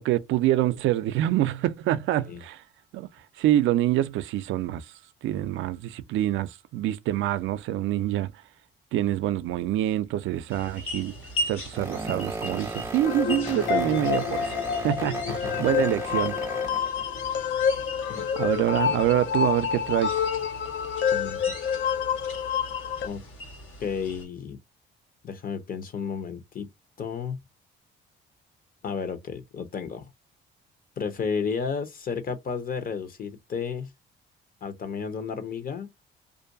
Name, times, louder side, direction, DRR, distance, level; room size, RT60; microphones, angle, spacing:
voice 1, 0.0-2.6 2.9-3.1 3.4-4.9 5.2-8.3 8.9-11.1 11.5-14.6 14.8-15.2 15.6-16.4 18.4-20.2, right 13 dB, 80° right, 0.4 m, -26 dB
sound 1, 10.3-10.6 11.7-17.0, right 3 dB, 15° right, 0.4 m, -36 dB
sound 2, 10.5-24.3, equal, 85° left, 1.4 m, -39 dB
sound 3, 13.0-23.1, left 7 dB, 70° left, 0.5 m, -28 dB
voice 2, 23.8-24.6 25.2-26.7 27.0-27.4 28.8-30.1 31.0-33.9 34.6-35.9, left 6 dB, 45° left, 0.8 m, -32 dB
2.5 x 2.2 x 2.6 m
cardioid pair, 90°, 20 cm